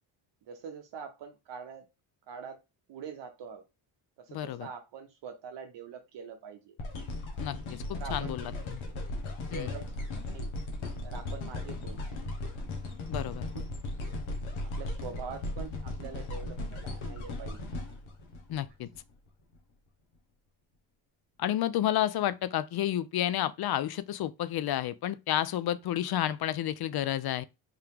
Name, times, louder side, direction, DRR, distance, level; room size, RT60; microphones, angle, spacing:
voice 1, 0.4-1.9 2.3-2.6 2.9-3.6 4.2-6.8 7.9-8.6 9.4-10.1 10.3-10.5 11.0-12.0 13.5-13.7 14.6-17.7, right 6 dB, 60° right, 0.7 m, -44 dB
voice 2, 4.3-4.7 7.4-8.8 9.5-9.7 13.1-13.5 18.5-18.9 21.4-27.4, left 12 dB, 50° left, 0.5 m, -31 dB
sound 1, 6.8-19.0 19.5-19.6, left 2 dB, 70° left, 1.3 m, -37 dB
3.6 x 2.8 x 3.5 m
cardioid pair, 75°, 49 cm